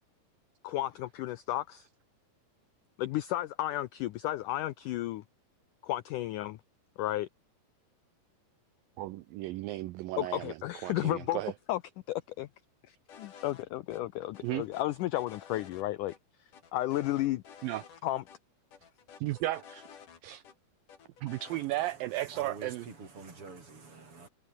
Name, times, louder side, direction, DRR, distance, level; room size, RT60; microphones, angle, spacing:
voice 1, 0.6-1.9 3.0-5.2 5.8-6.6 7.0-7.3 10.2-11.4 11.7-11.8 12.1-12.5 12.9-16.1 16.7-17.4 18.0-18.2, left 15 dB, 80° left, 1.9 m, -33 dB
voice 2, 9.0-10.6 10.8-11.5 14.4-14.6 17.6-17.8 19.2-19.9 20.2-20.4 21.2-22.9, right 16 dB, 75° right, 2.2 m, -34 dB
sound 1, 13.1-13.6 13.9-14.0 14.3-15.8 16.1-16.2 16.5-18.0 18.3-18.4 18.7-20.5 20.9-21.7, left 7 dB, 55° left, 4.3 m, -52 dB
voice 3, 21.5-24.3, right 4 dB, 35° right, 5.4 m, -48 dB
omnidirectional pair, 4.5 m